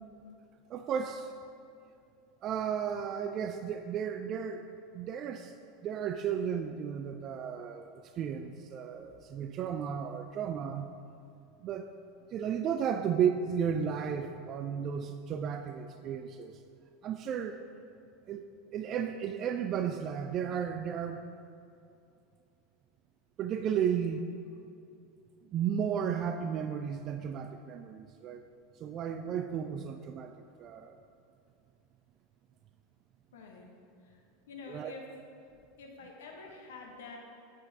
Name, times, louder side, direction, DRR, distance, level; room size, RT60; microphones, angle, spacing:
voice 1, 0.7-1.3 2.4-4.6 4.9-5.5 5.8-11.0 11.6-11.9 12.3-16.6 17.0-17.6 18.3-18.4 18.7-21.2 23.4-24.2 25.5-28.5 28.8-30.3 30.6-31.0 34.7-34.9, right 8 dB, 40° right, 7 dB, 0.3 m, -34 dB
voice 2, 33.3-33.7 34.0-34.2 34.5-35.0 35.8-37.2, left 4 dB, 65° left, 1 dB, 1.1 m, -47 dB
7.9 x 7.7 x 3.5 m, 2.5 s
figure-of-eight pair, 80°, 0 cm